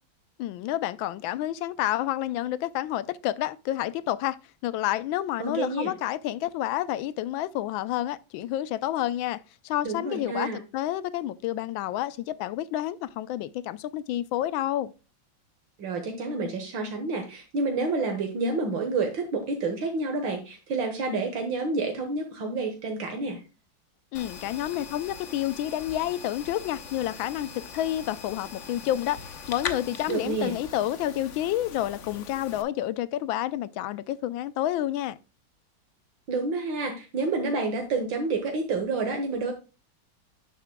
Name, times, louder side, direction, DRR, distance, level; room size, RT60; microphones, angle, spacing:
voice 1, 0.4-4.4 4.6-14.9 24.1-35.2, left 13 dB, 90° left, 1.4 m, -29 dB
voice 2, 5.4-5.9 9.8-10.6 15.8-23.4 30.1-30.6 36.3-39.5, right 3 dB, 75° right, 2.0 m, -29 dB
sound 1, 24.1-32.6, left 6 dB, 50° left, 1.0 m, -41 dB
10.5 x 7.3 x 2.2 m
omnidirectional pair, 2.1 m